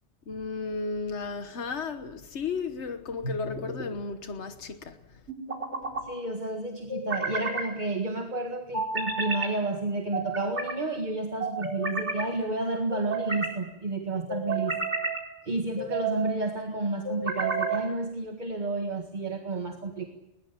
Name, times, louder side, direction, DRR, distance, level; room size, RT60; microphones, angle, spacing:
voice 1, 0.3-5.0, left 4 dB, 80° left, 1.5 m, -34 dB
sound 1, 3.2-3.9 5.3-6.0 6.9-7.7 8.7-9.5 10.1-10.8 11.4-12.2 12.9-13.6 14.3-15.2 15.8-16.3 17.0-17.9, right 3 dB, 80° right, 4.4 m, -31 dB
voice 2, 6.0-14.8 15.5-20.1, right 2 dB, 40° right, 1.9 m, -31 dB
21.5 x 20.5 x 8.5 m
omnidirectional pair, 1.2 m